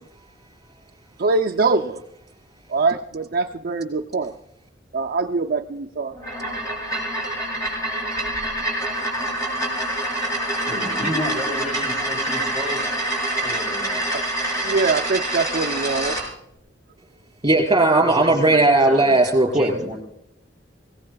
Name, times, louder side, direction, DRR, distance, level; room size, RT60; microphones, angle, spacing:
voice 1, 1.2-2.0 2.7-4.3 4.9-6.1 14.1-14.2 14.6-16.2, right 4 dB, 55° right, 2 dB, 0.5 m, -23 dB
sound 1, 6.1-16.3, right 1 dB, 20° left, 5.9 m, -26 dB
voice 2, 10.7-12.9 13.4-14.1 18.0-19.1 19.4-20.0, equal, 5° right, 1 dB, 3.5 m, -32 dB
voice 3, 17.4-19.9, right 2 dB, 25° right, 3 dB, 4.6 m, -17 dB
25.0 x 17.5 x 2.3 m, 0.78 s
head